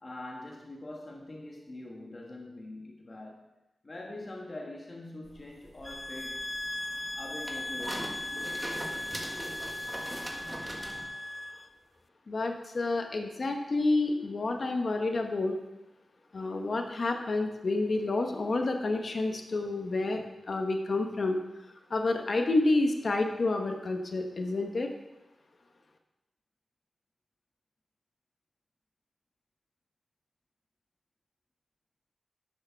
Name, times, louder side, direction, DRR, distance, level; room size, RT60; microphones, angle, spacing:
voice 1, 0.0-3.5 3.8-6.5 7.2-8.3, left 2 dB, 35° left, -1 dB, 1.4 m, -43 dB
sound 1, 5.3-11.1, right 1 dB, 20° right, 1.5 m, -41 dB
sound 2, 5.8-11.7, left 1 dB, 15° left, 0.4 m, -38 dB
voice 2, 12.3-15.5 16.3-21.4 21.9-24.9, left 2 dB, 55° left, 4 dB, 1.1 m, -29 dB
10.5 x 6.6 x 5.7 m, 0.98 s
wide cardioid pair, 105°, 0 cm